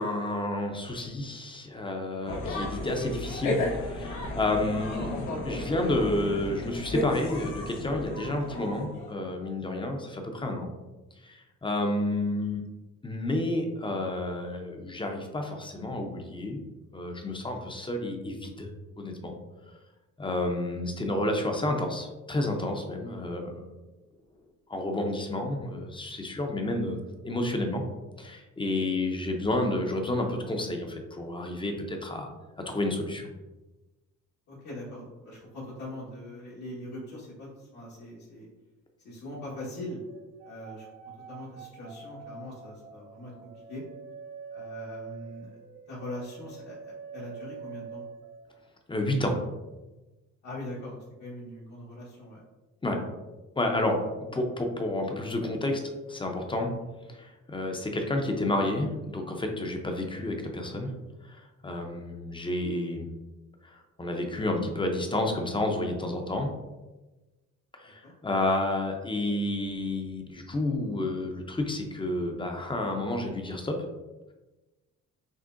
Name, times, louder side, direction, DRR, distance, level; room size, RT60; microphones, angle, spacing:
voice 1, 0.0-10.7 11.2-12.6 13.0-16.6 16.9-18.7 19.0-19.4 20.2-23.6 24.7-27.0 27.2-27.8 28.2-32.3 32.7-33.3 48.9-49.4 52.8-53.0 53.6-54.0 54.3-55.8 56.1-56.7 57.1-60.9 61.2-63.1 63.6-66.5 67.7-73.8, left 1 dB, 15° left, 3 dB, 0.6 m, -30 dB
sound 1, 2.3-9.1, left 2 dB, 90° left, 1.0 m, -33 dB
voice 2, 34.5-38.5 39.0-40.0 40.4-40.9 41.3-43.8 44.5-45.5 45.9-48.0 50.4-52.4 67.8-68.1, left 1 dB, 70° left, -8 dB, 1.4 m, -41 dB
sound 2, 39.6-48.8 49.1-49.3, right 5 dB, 80° right, 0.9 m, -45 dB
6.2 x 2.1 x 2.5 m, 1.1 s
cardioid pair, 90°, 30 cm